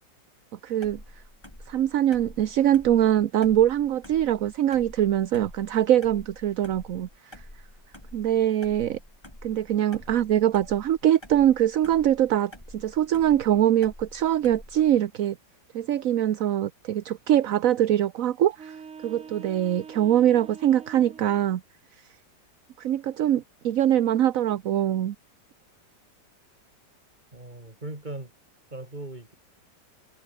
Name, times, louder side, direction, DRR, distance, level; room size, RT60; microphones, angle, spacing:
voice 1, 0.6-1.0 1.7-7.3 8.1-9.0 9.4-15.4 15.7-21.6 22.8-25.1, right 11 dB, 60° right, 1.0 m, -23 dB
sound 1, 0.8-15.0, left 1 dB, 15° left, 4.6 m, -48 dB
sound 2, 18.5-21.5, right 6 dB, 40° right, 1.7 m, -44 dB
voice 2, 27.3-28.3 28.7-29.3, right 2 dB, 25° right, 3.9 m, -38 dB
omnidirectional pair, 2.0 m